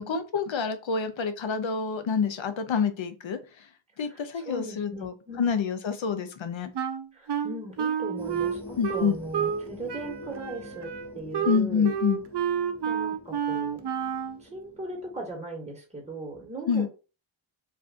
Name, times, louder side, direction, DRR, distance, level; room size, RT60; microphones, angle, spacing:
voice 1, 0.0-3.4 4.0-6.7 8.8-9.2 11.4-12.2 16.7-16.9, left 6 dB, 65° left, 9 dB, 0.7 m, -27 dB
voice 2, 4.0-5.5 7.1-10.9 11.1-11.9 12.8-13.8 14.4-16.9, right 1 dB, 15° right, -1 dB, 1.3 m, -38 dB
Wind instrument woodwind instrument, 6.8-9.6 9.9-14.4, right 8 dB, 55° right, 0.5 m, -30 dB
sound 1, 8.2-15.3, left 3 dB, 5° left, 0.9 m, -46 dB
2.5 x 2.5 x 3.4 m, 0.32 s
cardioid pair, 45°, 49 cm